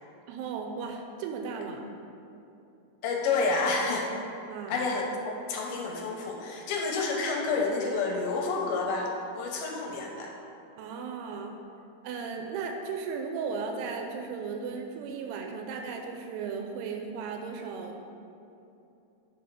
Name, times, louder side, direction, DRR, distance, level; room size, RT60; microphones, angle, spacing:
voice 1, 0.3-1.9 4.5-4.9 10.8-11.5 12.0-18.2, right 5 dB, 85° right, 3 dB, 2.7 m, -36 dB
voice 2, 3.0-4.1 4.7-10.3, left 4 dB, 80° left, 0 dB, 2.3 m, -29 dB
6.2 x 4.8 x 5.8 m, 2.8 s
omnidirectional pair, 4.7 m